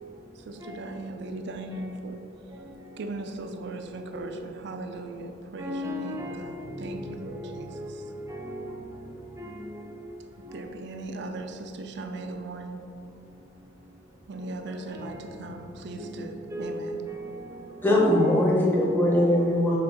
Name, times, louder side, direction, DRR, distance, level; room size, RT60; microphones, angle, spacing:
voice 1, 0.4-2.3 3.0-8.0 10.4-12.9 14.3-17.1, right 2 dB, 60° right, 0.4 m, -38 dB
voice 2, 2.5-3.1 4.0-4.3 5.6-8.8 9.1-10.0 10.4-10.7 14.4-15.5 16.0-16.2 16.5-17.6 18.2-18.3 19.3-19.6, equal, 15° right, 0.7 m, -38 dB
voice 3, 17.8-19.8, left 1 dB, 10° left, 0.9 m, -21 dB
6.6 x 3.8 x 4.1 m
head